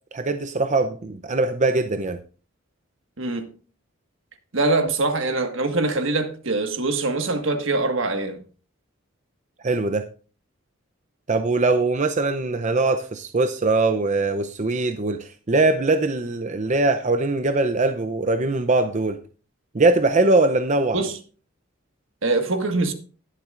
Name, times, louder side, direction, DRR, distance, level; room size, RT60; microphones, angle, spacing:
voice 1, 0.1-2.2 9.6-10.1 11.3-19.2 19.7-21.0, right 3 dB, 35° right, 0.6 m, -21 dB
voice 2, 3.2-3.5 4.5-8.4 20.9-21.2 22.2-22.9, right 2 dB, 70° right, 1.6 m, -23 dB
20.0 x 7.5 x 2.5 m
head